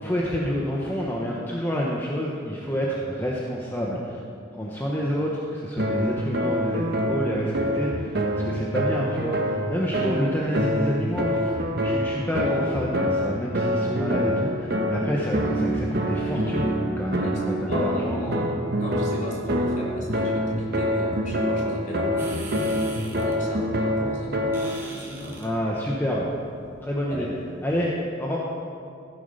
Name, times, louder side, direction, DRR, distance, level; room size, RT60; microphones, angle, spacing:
voice 1, 0.0-4.2 4.5-11.5 11.8-18.5 25.4-26.3 26.8-27.3 27.6-27.9 28.2-28.4, equal, 10° left, -4 dB, 1.1 m, -28 dB
sound 1, 5.8-24.8, equal, 55° right, 1.2 m, -26 dB
voice 2, 17.2-25.5 27.1-27.3, equal, 40° left, -5 dB, 3.3 m, -35 dB
sound 2, 22.2-27.8, right 2 dB, 15° right, 1.7 m, -45 dB
15.5 x 8.5 x 5.6 m, 2.4 s
head